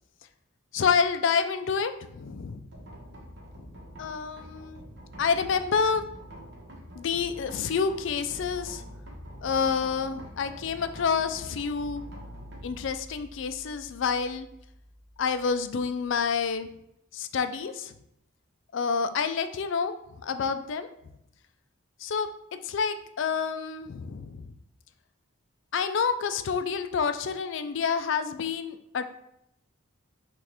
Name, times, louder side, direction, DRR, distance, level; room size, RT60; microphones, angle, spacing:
voice 1, 0.7-2.6 4.0-4.8 5.2-6.0 7.0-8.8 9.4-12.0 12.6-14.5 15.2-16.7 17.1-17.9 18.7-19.9 20.2-20.9 22.0-22.3 22.6-24.5 25.7-29.0, left 6 dB, 65° left, 10 dB, 0.4 m, -28 dB
sound 1, 2.7-16.6, equal, 55° right, 1.1 m, -46 dB
6.2 x 2.5 x 3.4 m, 0.79 s
head